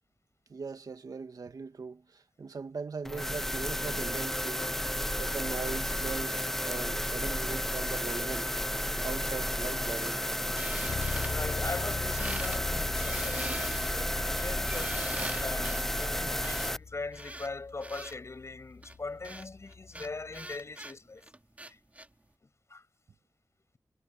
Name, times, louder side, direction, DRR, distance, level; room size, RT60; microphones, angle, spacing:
voice 1, 0.5-4.7 5.2-8.5 9.0-10.2, right 4 dB, 65° right, 2.0 m, -40 dB
sound 1, 3.0-16.8, left 1 dB, 5° left, 0.4 m, -32 dB
sound 2, 10.6-11.9 12.2-12.6 12.9-18.2 18.8-22.1, right 1 dB, 20° right, 2.6 m, -43 dB
Bass guitar, 10.9-20.6, left 5 dB, 75° left, 2.2 m, -42 dB
voice 2, 11.3-21.3 21.7-21.8 22.7-22.8, left 3 dB, 45° left, 6.4 m, -41 dB
wide cardioid pair, 80°, 7 cm